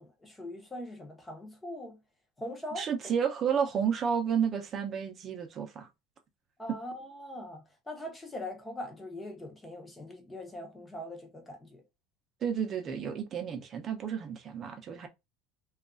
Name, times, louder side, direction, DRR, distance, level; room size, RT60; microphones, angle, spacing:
voice 1, 0.0-2.0 2.4-2.9 6.6-11.8, left 1 dB, 10° left, 0.7 m, -42 dB
voice 2, 2.8-5.9 12.4-15.1, right 7 dB, 30° right, 0.6 m, -31 dB
2.8 x 2.4 x 2.5 m
cardioid pair, 155°, 0 cm